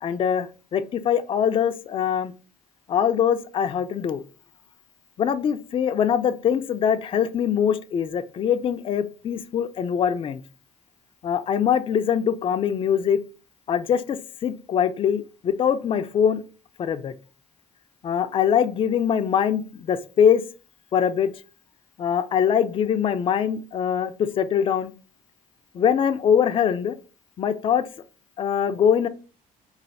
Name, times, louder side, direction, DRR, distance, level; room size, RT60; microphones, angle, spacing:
voice 1, 0.0-2.3 2.9-4.2 5.2-10.4 11.2-13.2 13.7-16.4 16.8-17.1 18.0-20.4 20.9-21.3 22.0-24.9 25.7-26.9 27.4-27.9 28.4-29.1, left 8 dB, 35° left, 9 dB, 0.4 m, -23 dB
3.2 x 2.3 x 4.0 m, 0.35 s
cardioid pair, 90°, 16 cm